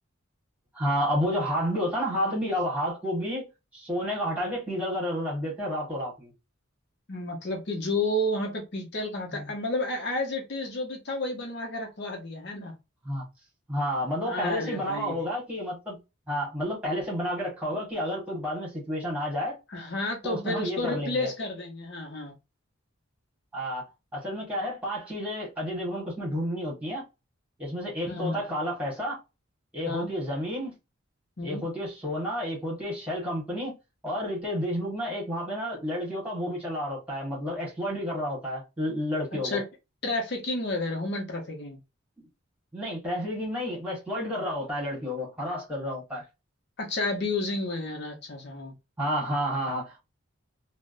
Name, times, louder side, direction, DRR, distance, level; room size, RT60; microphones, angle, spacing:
voice 1, 0.7-3.5 3.7-6.3 9.3-9.5 13.0-13.2 13.7-16.0 16.3-19.6 20.2-21.3 23.5-27.0 27.6-29.2 29.7-30.7 31.4-33.7 34.0-39.6 42.2-42.3 42.7-46.2 49.0-50.0, equal, 5° right, 1.4 m, -30 dB
voice 2, 7.1-12.8 14.2-15.2 19.7-22.3 28.1-28.4 29.9-30.1 31.4-31.6 39.4-39.6 40.0-41.8 46.8-48.7, left 2 dB, 50° left, 0.7 m, -31 dB
3.3 x 2.0 x 2.5 m
head